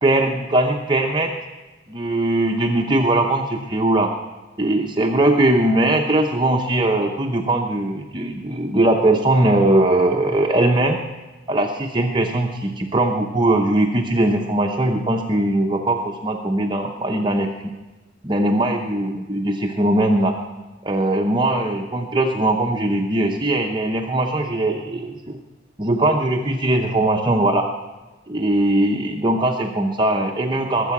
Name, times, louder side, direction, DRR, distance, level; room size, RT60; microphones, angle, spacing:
voice 1, 0.0-1.3 1.9-4.1 4.6-11.0 11.5-17.5 18.2-20.4 20.8-25.4 25.8-27.7 28.3-30.9, right 1 dB, 20° right, 2 dB, 0.8 m, -20 dB
21.0 x 7.6 x 5.9 m, 1.2 s
head